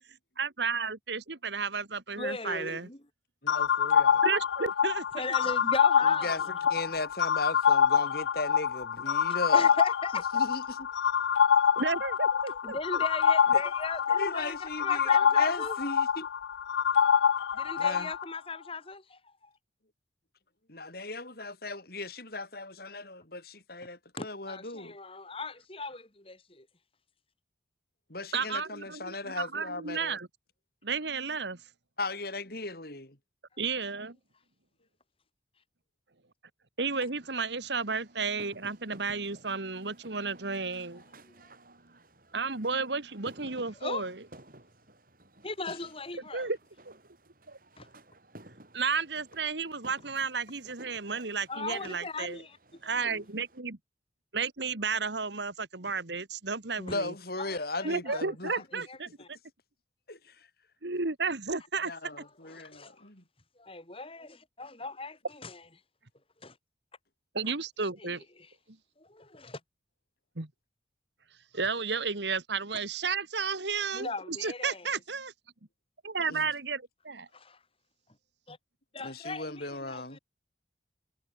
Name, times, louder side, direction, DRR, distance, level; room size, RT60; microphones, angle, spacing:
voice 1, 0.4-2.9 4.2-5.1 11.8-13.0 28.3-30.3 30.8-31.6 33.6-34.2 36.8-41.0 42.3-44.1 46.3-46.6 47.5-47.6 48.7-52.4 52.8-53.8 54.3-57.1 57.8-59.1 60.8-61.9 67.3-68.2 70.4-70.5 71.5-75.3 76.0-77.3, right 4 dB, 70° right, 1.9 m, -32 dB
voice 2, 2.2-3.0 5.1-6.5 9.1-10.3 12.3-15.8 17.5-19.5 24.2-26.7 33.5-33.6 41.3-41.5 43.4-44.1 45.4-46.5 47.8-47.9 51.5-53.2 57.4-59.3 62.4-63.0 63.6-65.7 66.4-66.6 67.4-67.5 68.0-68.5 69.0-69.6 73.9-74.9 77.3-77.6 78.5-78.6 78.9-80.2, left 3 dB, 30° left, 3.9 m, -39 dB
voice 3, 3.4-4.2 6.2-6.4 6.7-9.7 10.3-10.9 13.5-13.6 14.2-16.3 17.8-18.1 20.7-25.0 28.1-30.2 32.0-33.2 56.8-58.8 60.1-60.5 61.8-63.2 76.3-76.5 79.0-80.2, left 2 dB, 55° left, 5.6 m, -37 dB
sound 1, 3.5-18.2, left 7 dB, 80° left, 0.4 m, -26 dB
sound 2, 37.1-53.6, right 1 dB, 50° right, 8.0 m, -56 dB
head